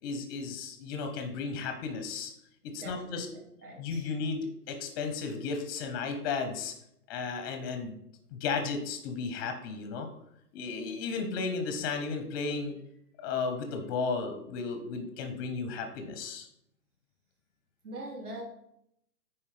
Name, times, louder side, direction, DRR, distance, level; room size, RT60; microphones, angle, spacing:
voice 1, 0.0-2.3 2.7-3.3 3.8-6.7 7.1-8.0 8.3-10.1 10.5-12.8 13.2-16.5, left 4 dB, 15° left, 7 dB, 0.6 m, -34 dB
voice 2, 2.6-4.1 17.8-18.4, right 1 dB, 60° right, -1 dB, 3.4 m, -43 dB
9.2 x 4.6 x 4.9 m, 0.75 s
hypercardioid pair, 150°, 49 cm